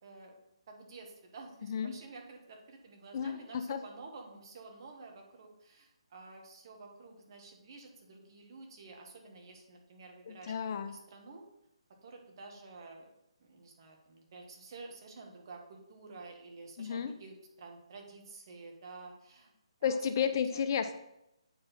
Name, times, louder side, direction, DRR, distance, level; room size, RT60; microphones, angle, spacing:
voice 1, 0.0-0.4 0.7-11.5 12.0-13.1 13.4-19.5 19.8-20.0 20.5-20.6, right 3 dB, 45° right, 2 dB, 1.7 m, -51 dB
voice 2, 3.1-3.8 10.3-10.9 16.8-17.2 19.8-21.0, left 7 dB, 40° left, 9 dB, 0.5 m, -32 dB
8.5 x 4.7 x 4.2 m, 0.84 s
figure-of-eight pair, 145°, 3 cm